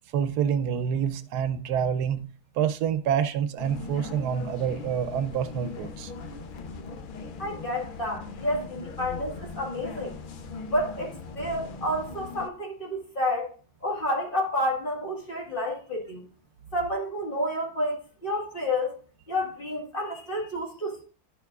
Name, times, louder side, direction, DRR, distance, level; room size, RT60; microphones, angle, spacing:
voice 1, 0.1-2.3 2.6-6.1, right 8 dB, 80° right, 1.1 m, -27 dB
sound 1, 3.6-12.5, left 4 dB, 75° left, 0.4 m, -40 dB
voice 2, 7.4-10.2 10.7-13.5 13.8-16.2 16.7-19.0 19.3-21.0, left 1 dB, 35° left, 1.9 m, -30 dB
10.5 x 6.7 x 2.4 m
omnidirectional pair, 1.7 m